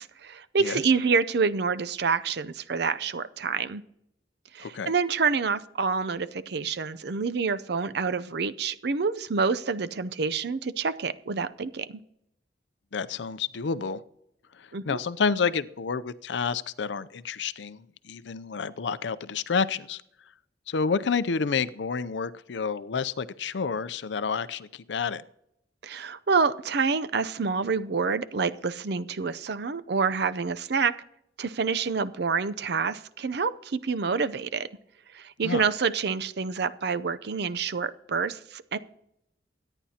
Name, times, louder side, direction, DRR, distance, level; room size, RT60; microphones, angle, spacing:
voice 1, 0.0-3.8 4.5-12.0 14.7-15.0 25.8-30.9 31.4-34.7 35.1-38.8, right 5 dB, 60° right, 14 dB, 0.6 m, -27 dB
voice 2, 4.6-4.9 12.9-14.0 14.6-20.0 20.7-25.2 35.4-35.6, left 5 dB, 75° left, 16 dB, 0.5 m, -29 dB
23.0 x 10.0 x 2.9 m, 0.79 s
head